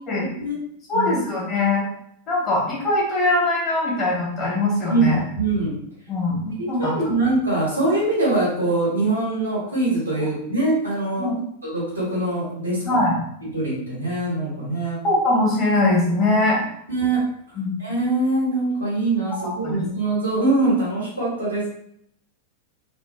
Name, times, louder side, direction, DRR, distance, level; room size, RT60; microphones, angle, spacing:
voice 1, 0.9-1.9 2.3-5.2 6.1-7.1 11.2-11.3 12.8-13.2 15.0-16.6 17.6-17.8 19.6-19.8, left 2 dB, 30° left, -3 dB, 1.1 m, -21 dB
voice 2, 4.9-5.7 6.8-11.3 11.7-12.8 13.5-15.0 16.9-17.2 17.8-21.7, right 2 dB, 80° right, -5 dB, 1.1 m, -23 dB
2.6 x 2.5 x 2.4 m, 0.71 s
figure-of-eight pair, 90°, 0 cm